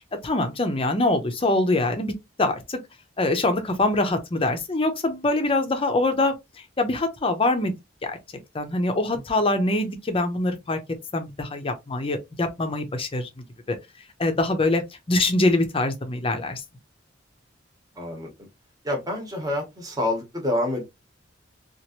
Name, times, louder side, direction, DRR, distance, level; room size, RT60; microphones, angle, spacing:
voice 1, 0.2-2.8 3.2-6.3 6.8-7.7 8.1-8.2 8.5-10.8 11.1-13.3 13.7-13.8 14.2-14.8 15.1-16.6, left 2 dB, 30° left, 0.7 m, -24 dB
voice 2, 18.0-18.5 18.8-20.8, left 1 dB, 20° right, 1.1 m, -27 dB
3.0 x 2.5 x 2.9 m
head